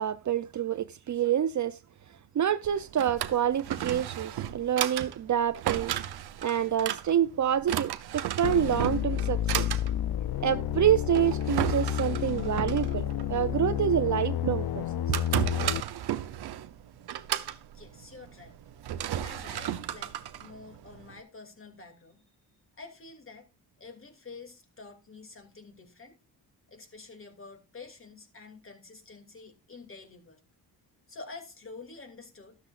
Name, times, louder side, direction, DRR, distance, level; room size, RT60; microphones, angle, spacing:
voice 1, 0.0-1.8 2.3-5.9 6.4-9.7 10.4-15.0 15.3-15.5, right 10 dB, 45° right, 0.6 m, -27 dB
Drawer open or close, 2.6-21.2, right 11 dB, 70° right, 0.9 m, -35 dB
sound 1, 8.4-15.8, left 11 dB, 60° left, 0.6 m, -30 dB
voice 2, 17.7-18.6 19.2-22.2 22.8-23.5 23.8-26.2 26.7-30.4 31.1-32.6, left 3 dB, 30° left, 2.7 m, -48 dB
13.0 x 12.5 x 2.5 m
cardioid pair, 90°, 40 cm